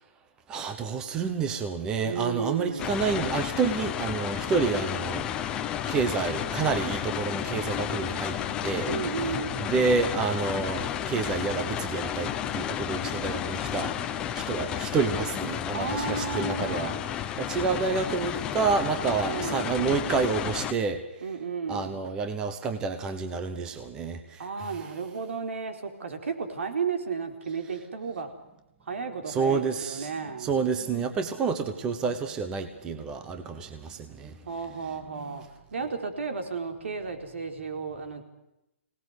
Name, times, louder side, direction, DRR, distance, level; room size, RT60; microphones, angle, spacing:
voice 1, 0.5-5.3 5.9-8.9 9.6-13.9 14.3-16.9 17.4-21.0 21.7-24.9 29.3-30.1 30.4-34.3 35.1-35.4, right 5 dB, 10° right, 8 dB, 1.0 m, -29 dB
voice 2, 2.0-2.9 8.8-9.7 15.7-17.0 19.0-19.7 21.2-22.0 24.4-28.3 28.9-30.5 34.5-35.4 35.7-38.2, right 5 dB, 70° right, 5 dB, 4.4 m, -33 dB
sound 1, 2.8-20.7, left 10 dB, 10° left, 0.8 m, -32 dB
24.5 x 18.5 x 8.1 m, 0.90 s
hypercardioid pair, 170°, 7 cm